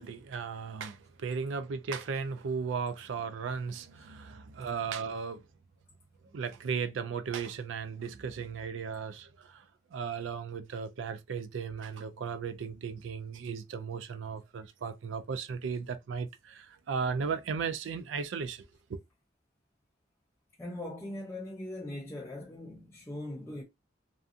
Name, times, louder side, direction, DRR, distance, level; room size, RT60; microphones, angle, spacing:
voice 1, 0.0-5.4 6.3-9.6 9.9-19.0, right 5 dB, 70° right, 0.4 m, -36 dB
voice 2, 20.6-23.6, left 1 dB, 15° left, 0.4 m, -40 dB
2.6 x 2.4 x 2.4 m
head